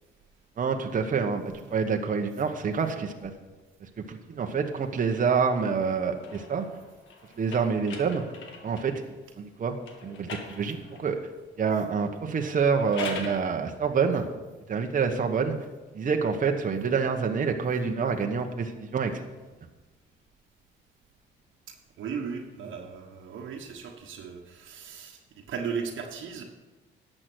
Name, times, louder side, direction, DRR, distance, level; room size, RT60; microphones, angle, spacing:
voice 1, 0.6-3.3 4.1-6.7 7.4-8.2 8.6-9.0 9.4-9.8 10.0-11.2 11.6-14.3 14.7-15.6 15.9-19.2, right 5 dB, 40° right, 4 dB, 1.1 m, -27 dB
sound 1, 4.9-9.0 9.8-11.2 12.6-13.4, left 4 dB, 75° left, 1.8 m, -41 dB
voice 2, 21.7-26.4, right 6 dB, 75° right, 0 dB, 1.4 m, -37 dB
11.0 x 7.7 x 6.2 m, 1.2 s
cardioid pair, 90°, 20 cm